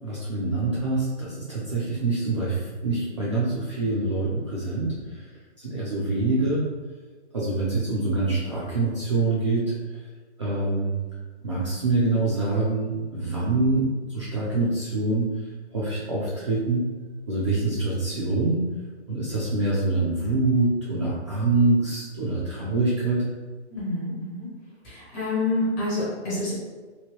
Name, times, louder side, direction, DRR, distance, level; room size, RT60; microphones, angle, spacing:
voice 1, 0.0-5.2 5.6-6.6 7.3-9.6 10.4-10.9 11.4-15.3 15.7-16.8 17.3-18.6 19.1-23.2, right 2 dB, 25° right, -8 dB, 0.4 m, -25 dB
voice 2, 23.7-24.5 24.8-26.5, left 2 dB, 15° left, -8 dB, 0.7 m, -28 dB
3.0 x 2.7 x 2.9 m, 1.4 s
hypercardioid pair, 150°, 35 cm